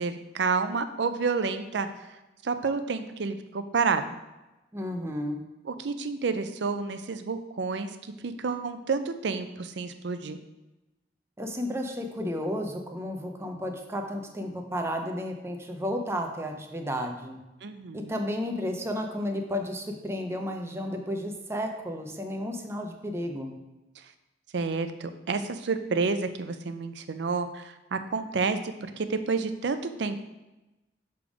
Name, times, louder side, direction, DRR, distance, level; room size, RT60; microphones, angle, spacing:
voice 1, 0.0-1.9 2.4-4.2 5.6-10.4 17.6-18.1 24.5-28.6 29.0-30.2, right 4 dB, 70° right, 9 dB, 0.5 m, -29 dB
voice 2, 4.7-5.4 11.4-17.4 17.9-23.6, equal, 15° right, 3 dB, 0.6 m, -32 dB
6.6 x 3.5 x 5.0 m, 0.99 s
head